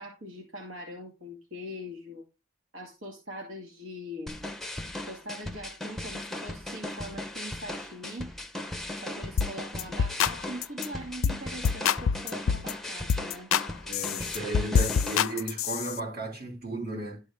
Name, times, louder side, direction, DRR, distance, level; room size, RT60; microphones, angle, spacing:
voice 1, 0.0-2.2 2.7-4.5 5.1-8.3 8.9-13.5, equal, 80° right, 2.3 m, -42 dB
sound 1, 4.3-15.2, left 1 dB, ahead, 0.8 m, -38 dB
sound 2, 9.4-9.5 9.8-10.3 10.6-10.9 11.2-11.4 11.6-12.7 13.1-13.7 13.9-16.0, left 7 dB, 75° left, 0.4 m, -26 dB
voice 2, 13.8-17.2, right 1 dB, 50° right, 4.2 m, -35 dB
12.0 x 4.4 x 3.6 m
head